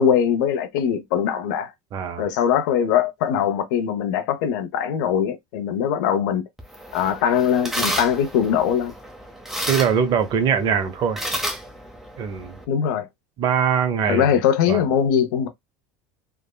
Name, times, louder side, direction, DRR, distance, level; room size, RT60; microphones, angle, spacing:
voice 1, 0.0-1.7 2.2-6.4 6.9-8.9 12.7-13.1 14.1-15.5, left 8 dB, 80° left, 0.7 m, -21 dB
voice 2, 1.9-2.3 9.7-11.2 12.2-12.6 13.4-14.4 14.7-14.8, right 7 dB, 45° right, 0.7 m, -22 dB
sound 1, 6.6-12.6, equal, 5° right, 0.7 m, -32 dB
3.5 x 2.0 x 2.2 m
supercardioid pair, 115°, 10 cm